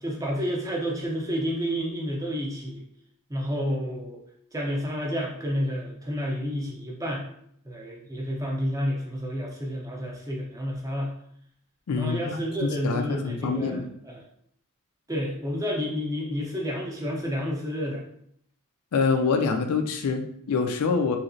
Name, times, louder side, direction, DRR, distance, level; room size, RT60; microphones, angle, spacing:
voice 1, 0.0-2.8 3.3-4.2 4.5-7.2 7.6-11.1 11.9-14.2 15.1-18.0, equal, 15° right, -1 dB, 0.5 m, -30 dB
voice 2, 11.9-13.9 18.9-21.2, left 4 dB, 85° left, 5 dB, 0.4 m, -26 dB
3.1 x 2.8 x 2.6 m, 0.67 s
head